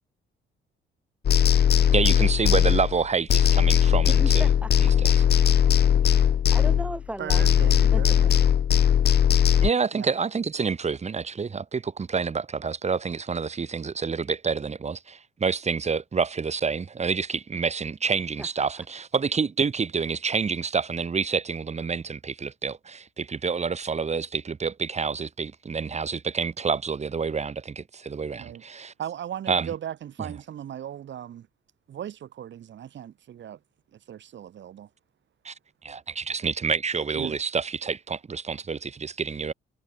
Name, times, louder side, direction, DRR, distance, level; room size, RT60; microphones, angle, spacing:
sound 1, 1.2-3.0 3.3-7.0 7.3-9.7, left 9 dB, 55° left, 1.4 m, -19 dB
voice 1, 1.9-4.5 4.8-5.2 9.6-28.9 29.5-29.7 30.2-30.3 35.4-35.5 35.8-39.5, right 5 dB, 35° right, 2.5 m, -28 dB
voice 2, 4.1-5.1 6.0-8.2 18.4-18.7, right 1 dB, 5° right, 4.3 m, -37 dB
voice 3, 7.2-8.4 9.9-10.1 28.4-28.6 29.0-31.5 31.9-33.6 33.9-34.9 37.1-37.4, right 10 dB, 65° right, 6.7 m, -37 dB
cardioid pair, 90°, 20 cm